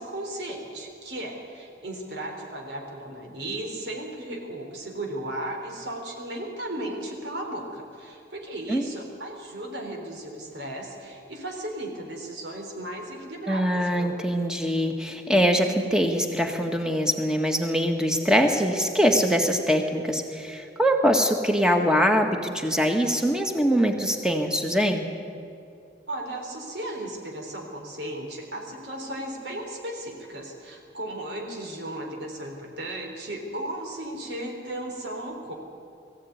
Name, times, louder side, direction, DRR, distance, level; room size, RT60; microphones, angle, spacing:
voice 1, 0.0-14.2 26.1-35.5, right 1 dB, 75° right, 1 dB, 3.7 m, -35 dB
voice 2, 13.5-25.1, equal, 5° right, 4 dB, 1.8 m, -23 dB
22.0 x 15.0 x 9.6 m, 2.6 s
head